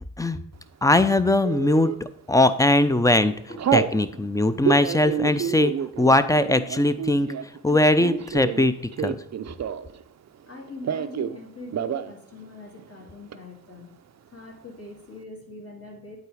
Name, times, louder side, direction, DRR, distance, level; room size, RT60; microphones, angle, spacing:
voice 1, 0.8-1.9 2.3-3.3 3.7-7.3 7.6-8.7 9.0-9.2, left 2 dB, 10° left, 12 dB, 0.6 m, -20 dB
Telephone, 1.4-2.0 2.5-2.8 3.1-4.0 4.5-10.0 10.3-11.4 11.7-12.1 12.4-12.5 12.8-13.4, right 8 dB, 50° right, 0.5 m, -29 dB
voice 2, 10.5-14.0 14.3-16.2, left 2 dB, 40° left, 0 dB, 2.3 m, -42 dB
8.2 x 4.0 x 4.9 m, 0.72 s
supercardioid pair, 40°, 34 cm